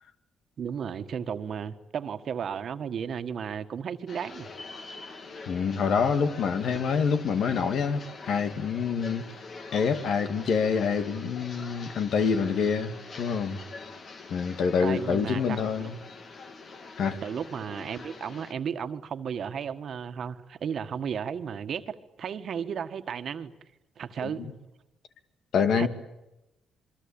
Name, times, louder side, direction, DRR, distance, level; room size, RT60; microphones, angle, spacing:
voice 1, 0.6-4.5 14.8-15.9 17.2-23.5 24.0-24.5 25.8-25.9, right 7 dB, 60° right, 9 dB, 1.7 m, -34 dB
sound 1, 4.1-18.5, left 3 dB, 50° left, 3.0 m, -44 dB
voice 2, 5.5-9.3 9.7-13.6 14.3-16.0 17.0-17.2 24.2-24.5 25.5-25.9, left 6 dB, 65° left, 9 dB, 2.4 m, -26 dB
27.0 x 23.0 x 8.8 m, 0.95 s
cardioid pair, 90°, 0 cm